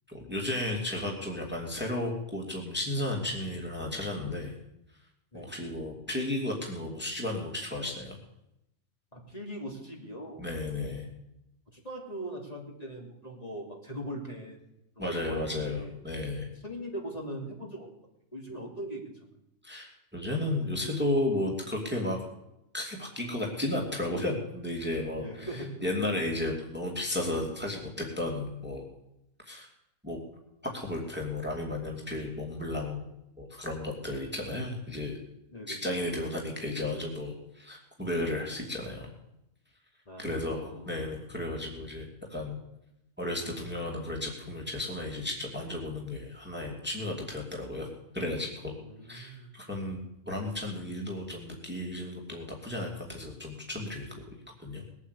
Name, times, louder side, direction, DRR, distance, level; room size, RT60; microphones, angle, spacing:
voice 1, 0.1-4.5 5.3-8.2 10.4-11.1 15.0-16.5 19.6-22.2 22.7-28.8 29.4-29.7 30.0-30.2 30.7-33.1 33.4-35.2 35.7-39.1 40.2-42.6 43.2-48.7 49.0-54.1 54.6-54.8, left 1 dB, 5° right, 0 dB, 2.6 m, -33 dB
voice 2, 9.1-10.5 11.7-14.6 15.0-15.9 16.6-17.9 18.3-19.3 25.2-25.7 34.0-34.6 35.5-35.8 40.1-40.9 48.7-49.5, equal, 25° left, -1 dB, 3.0 m, -41 dB
20.5 x 8.5 x 8.4 m, 0.85 s
omnidirectional pair, 1.4 m